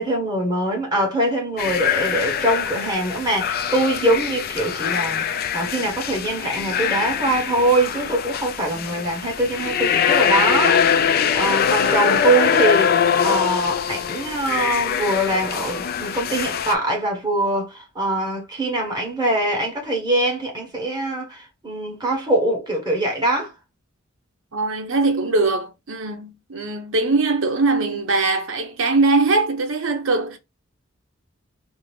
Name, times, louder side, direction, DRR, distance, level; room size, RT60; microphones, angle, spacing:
voice 1, 0.0-23.5, right 1 dB, 20° right, 1.1 m, -23 dB
sound 1, 1.6-16.7, left 7 dB, 50° left, 0.3 m, -22 dB
voice 2, 11.6-12.2 24.5-30.4, right 3 dB, 80° right, 0.8 m, -21 dB
3.6 x 2.0 x 3.1 m
head